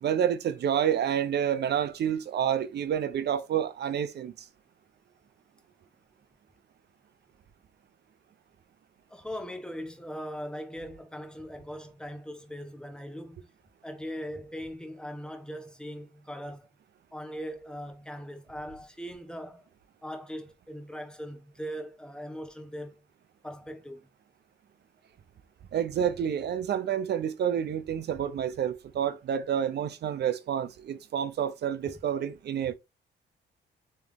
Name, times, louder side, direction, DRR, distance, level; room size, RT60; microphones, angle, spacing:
voice 1, 0.0-4.3 25.7-32.7, right 9 dB, 55° right, 0.6 m, -29 dB
voice 2, 9.1-13.5 13.8-16.7 17.1-19.7 20.0-23.0 23.4-24.1, equal, 5° left, 1.0 m, -40 dB
3.5 x 3.3 x 3.4 m
cardioid pair, 90°, 20 cm